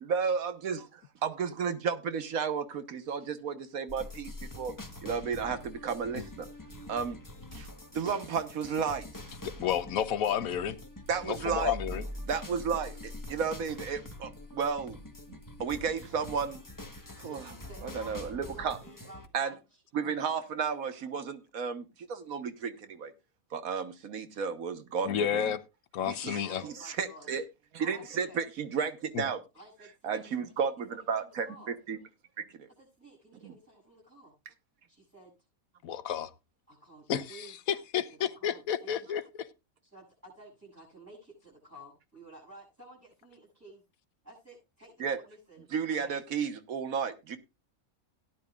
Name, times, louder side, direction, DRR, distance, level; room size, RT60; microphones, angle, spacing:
voice 1, 0.0-4.7 5.0-6.5 6.9-7.2 7.5-7.7 7.9-9.1 11.1-11.7 12.3-15.0 15.3-16.6 17.2-17.5 17.8-18.8 19.3-19.5 19.9-23.1 23.5-25.4 26.0-27.4 27.7-29.4 30.0-32.0 32.4-32.7 33.4-33.5 45.0-45.2 45.7-47.4, right 6 dB, 75° right, 1.6 m, -33 dB
sound 1, 3.9-19.3, left 1 dB, 15° left, 1.1 m, -44 dB
voice 2, 9.4-10.8 11.2-12.0 25.1-25.6 25.9-26.6 29.1-29.2 35.8-36.3 37.1-37.3 37.9-39.2, left 9 dB, 75° left, 1.2 m, -31 dB
voice 3, 17.1-18.1 18.4-19.8 26.4-27.3 27.8-28.5 29.5-31.7 32.8-34.3 34.9-35.3 36.7-37.5 38.2-39.1 39.9-43.8 44.2-46.1, right 1 dB, 10° right, 7.6 m, -52 dB
17.0 x 10.0 x 2.4 m
omnidirectional pair, 1.5 m